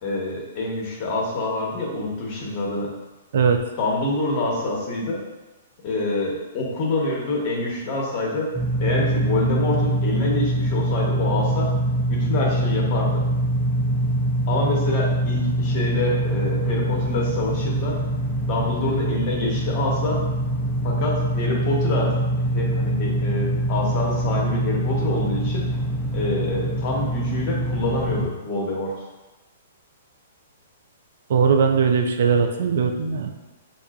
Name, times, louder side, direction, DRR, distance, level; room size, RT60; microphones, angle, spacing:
voice 1, 0.0-2.9 3.8-5.2 5.8-8.5 8.8-11.7 12.1-13.2 14.5-18.0 18.5-20.2 20.8-25.7 26.1-28.9, left 2 dB, 35° left, -2 dB, 0.9 m, -26 dB
sound 1, 8.5-28.3, right 1 dB, 5° left, 0.4 m, -24 dB
voice 2, 31.3-33.3, right 6 dB, 60° right, 5 dB, 0.3 m, -19 dB
5.3 x 2.4 x 2.3 m, 1.1 s
hypercardioid pair, 160°, 0 cm